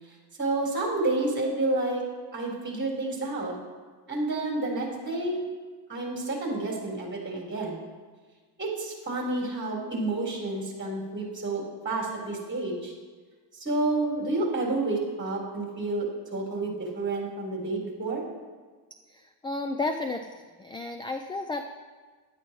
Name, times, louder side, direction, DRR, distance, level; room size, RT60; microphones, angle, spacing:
voice 1, 0.4-2.0 2.3-3.5 4.1-5.4 5.9-7.8 8.6-12.9 13.5-16.1 16.3-18.2, right 2 dB, 25° right, -3 dB, 4.3 m, -29 dB
voice 2, 19.1-20.3 20.6-21.6, left 2 dB, 10° left, 6 dB, 0.4 m, -32 dB
16.5 x 12.0 x 3.1 m, 1.4 s
cardioid pair, 135°, 46 cm